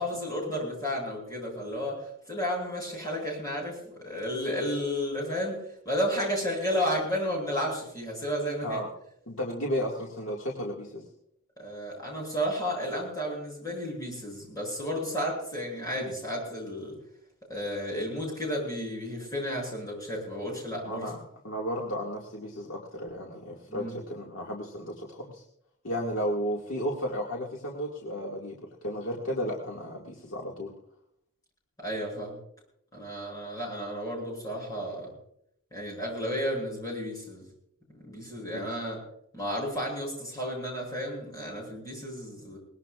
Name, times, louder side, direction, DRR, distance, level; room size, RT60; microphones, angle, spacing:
voice 1, 0.0-8.8 11.6-16.9 17.5-21.1 23.7-24.0 31.8-32.4 32.9-35.1 35.7-37.4 38.0-39.0 39.3-42.6, equal, 15° left, -2 dB, 7.9 m, -32 dB
voice 2, 9.3-11.1 20.8-25.4 25.8-30.7 38.5-38.7, equal, 70° left, -3 dB, 2.1 m, -33 dB
22.5 x 19.5 x 2.5 m, 0.72 s
head